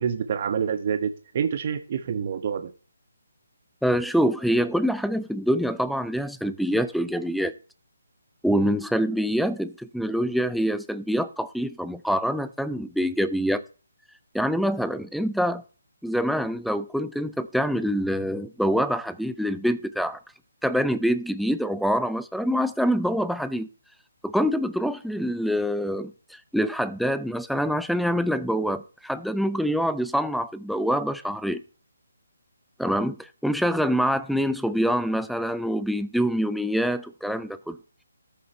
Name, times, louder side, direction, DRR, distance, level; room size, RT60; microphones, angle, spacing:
voice 1, 0.0-2.7, right 7 dB, 40° right, 1.0 m, -27 dB
voice 2, 3.8-7.5 8.4-13.6 14.3-15.6 16.0-20.2 20.6-23.7 24.2-31.6 32.8-37.8, equal, ahead, 0.5 m, -25 dB
13.5 x 6.6 x 4.4 m
hypercardioid pair, 160°, 0 cm